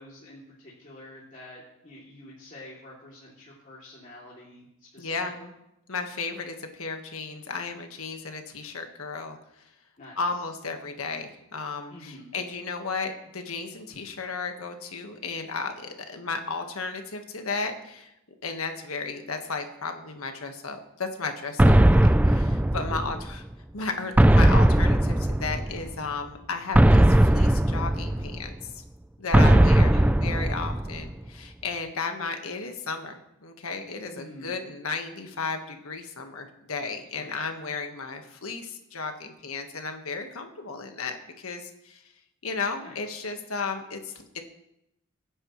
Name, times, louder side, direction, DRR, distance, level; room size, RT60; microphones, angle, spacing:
voice 1, 0.0-5.5 10.0-10.4 11.9-12.3 29.3-29.6 29.9-30.1 34.1-34.5 37.1-37.5 42.8-43.0, left 1 dB, 35° left, -7 dB, 2.8 m, -47 dB
voice 2, 5.0-5.3 5.9-9.4 10.2-18.1 18.4-23.4 23.7-28.5 29.2-29.9 30.2-33.2 33.4-42.0 42.4-44.1, left 4 dB, 75° left, 5 dB, 1.5 m, -34 dB
sound 1, 21.6-23.4 24.2-25.9 26.7-28.5 29.3-31.1, right 1 dB, 5° right, 0.4 m, -19 dB
23.5 x 9.8 x 3.2 m, 0.84 s
head